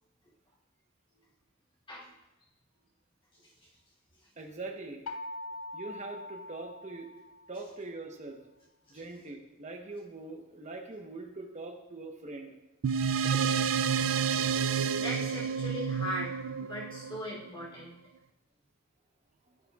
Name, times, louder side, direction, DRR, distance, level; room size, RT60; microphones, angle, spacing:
voice 1, 3.3-3.7 8.9-9.0 14.2-14.6 14.9-18.0, left 1 dB, 25° left, -5 dB, 3.0 m, -40 dB
voice 2, 4.4-5.0 5.7-7.1 7.5-8.4 8.9-12.6, right 2 dB, 35° right, 3 dB, 1.0 m, -42 dB
sound 1, 5.1-7.8, left 2 dB, 90° left, 0.4 m, -43 dB
sound 2, 12.8-17.6, right 6 dB, 75° right, 0.4 m, -29 dB
15.0 x 6.6 x 2.4 m, 0.94 s
head